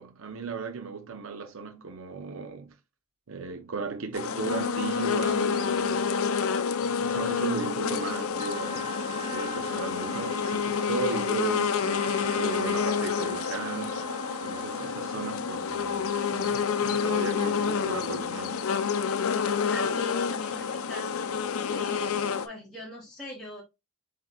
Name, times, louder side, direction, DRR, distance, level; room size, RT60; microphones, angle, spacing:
voice 1, 0.0-2.8 3.3-6.2 6.8-14.1 14.4-18.7, right 5 dB, 60° right, 0.6 m, -36 dB
sound 1, 4.1-22.5, left 6 dB, 70° left, 0.5 m, -28 dB
Trumpet, 8.4-15.1, right 3 dB, 20° right, 0.9 m, -41 dB
voice 2, 19.7-21.2 21.7-23.6, left 1 dB, ahead, 1.3 m, -41 dB
7.6 x 2.9 x 2.3 m
head